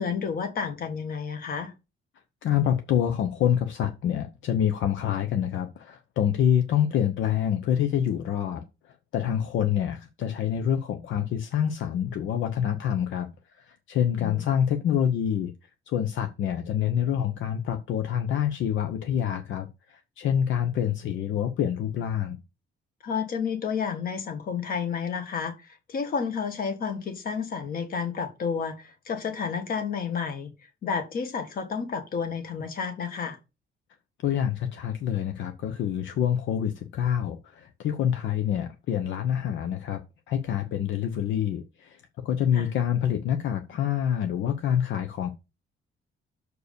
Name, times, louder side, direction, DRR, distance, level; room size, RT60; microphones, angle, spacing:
voice 1, 0.0-1.7 14.1-14.4 23.0-25.5 25.9-30.5 30.8-33.4 42.5-42.7, left 6 dB, 45° left, 1.6 m, -30 dB
voice 2, 2.4-8.6 9.1-13.3 13.6-15.5 15.9-22.4 34.2-40.0 40.3-45.3, left 9 dB, 65° left, 0.9 m, -26 dB
6.5 x 4.7 x 6.8 m
cardioid pair, 180°, 21 cm